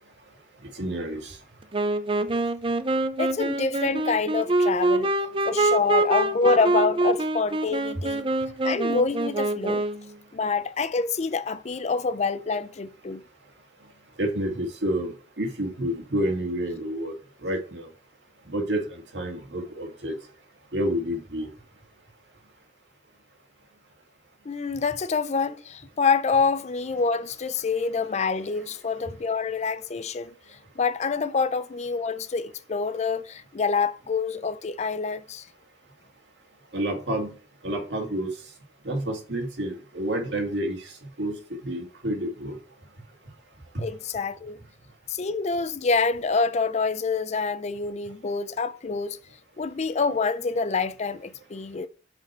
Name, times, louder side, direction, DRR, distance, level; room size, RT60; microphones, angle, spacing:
voice 1, 0.8-1.4 14.2-17.1 17.4-17.9 18.5-18.8 19.1-20.1 20.7-21.5 36.7-37.3 37.6-38.3 38.8-40.8 41.2-41.4 41.6-42.6 43.7-43.9, right 1 dB, 85° right, 2.1 m, -29 dB
Wind instrument woodwind instrument, 1.7-10.1, right 2 dB, 30° right, 0.5 m, -25 dB
voice 2, 3.2-5.1 5.5-8.3 8.6-9.9 10.3-13.2 24.5-35.4 43.8-44.6 45.1-49.2 49.6-51.9, left 4 dB, 40° left, 0.5 m, -26 dB
6.3 x 5.2 x 4.4 m
head